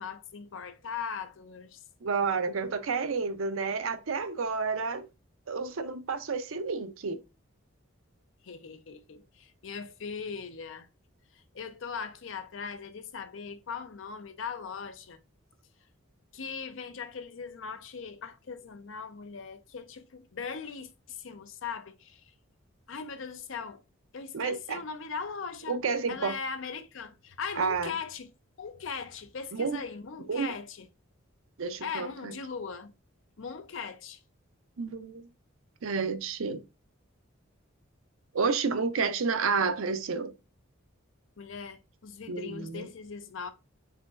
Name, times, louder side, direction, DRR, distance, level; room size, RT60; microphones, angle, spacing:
voice 1, 0.0-1.8 8.4-10.9 11.5-15.2 16.3-22.2 22.9-23.8 24.1-25.8 26.1-28.3 28.6-30.9 31.8-32.9 33.4-34.2 41.4-43.5, left 5 dB, 65° left, 0.5 m, -39 dB
voice 2, 2.0-5.1 5.5-7.2 24.3-24.8 25.7-26.4 27.6-27.9 29.5-29.8 30.3-30.5 31.6-32.3 34.8-35.3 35.8-36.6 38.3-40.3 42.3-42.9, right 5 dB, 80° right, 0.6 m, -30 dB
4.2 x 3.7 x 2.4 m
head